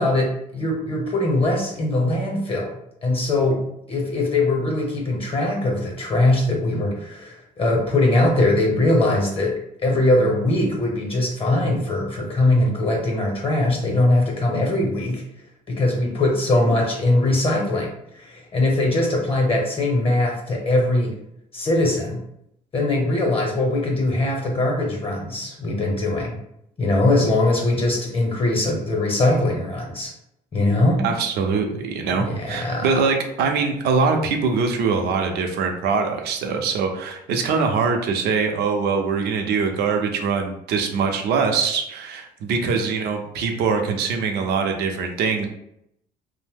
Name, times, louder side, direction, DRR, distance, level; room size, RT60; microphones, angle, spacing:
voice 1, 0.0-15.2 15.7-21.1 21.5-22.2 22.7-26.4 26.8-30.1 30.5-31.0 32.2-33.1, left 2 dB, 35° left, 0 dB, 0.7 m, -21 dB
voice 2, 31.0-45.5, right 5 dB, 75° right, 4 dB, 0.5 m, -23 dB
2.6 x 2.0 x 3.4 m, 0.78 s
cardioid pair, 110°, 17 cm